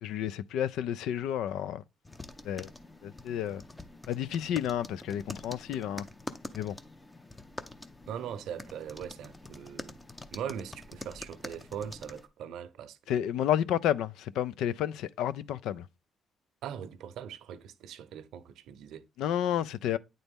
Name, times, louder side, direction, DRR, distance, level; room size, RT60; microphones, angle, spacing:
voice 1, 0.0-1.8 2.4-2.7 3.0-3.6 4.1-6.1 6.5-6.8 13.1-15.9 19.2-20.0, left 10 dB, 85° left, 0.3 m, -31 dB
sound 1, 2.0-12.3, left 2 dB, 15° left, 0.7 m, -46 dB
voice 2, 8.1-10.0 10.3-13.2 16.6-19.1, right 9 dB, 80° right, 0.7 m, -41 dB
9.0 x 4.0 x 3.5 m
cardioid pair, 90°, 0 cm